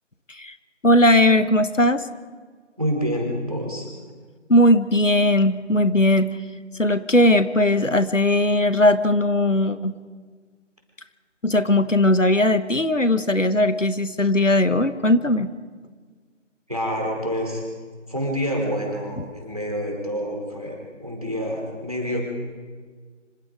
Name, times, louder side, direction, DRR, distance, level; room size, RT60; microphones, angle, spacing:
voice 1, 0.8-2.0 4.5-6.4 6.8-9.9 11.4-15.5, left 1 dB, 80° left, 12 dB, 1.5 m, -18 dB
voice 2, 2.8-3.9 16.7-17.6 18.1-22.2, equal, 30° right, 0 dB, 4.6 m, -27 dB
26.0 x 26.0 x 5.0 m, 1.5 s
figure-of-eight pair, 180°, 37 cm